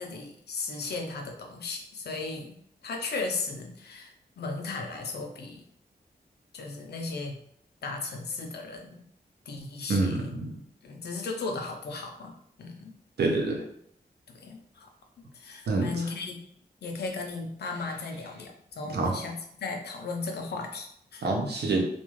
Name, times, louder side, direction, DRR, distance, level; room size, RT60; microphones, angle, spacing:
voice 1, 0.0-2.6 2.8-5.7 6.5-7.4 7.8-9.0 9.5-10.3 10.8-12.9 14.3-14.9 15.3-16.5 16.8-21.3, left 3 dB, 80° left, 2 dB, 0.5 m, -36 dB
voice 2, 9.9-10.6 13.2-13.6 15.7-15.9 18.9-19.1 21.2-21.8, right 3 dB, 85° right, 2 dB, 0.6 m, -26 dB
2.3 x 2.3 x 3.0 m, 0.69 s
wide cardioid pair, 155°, 17 cm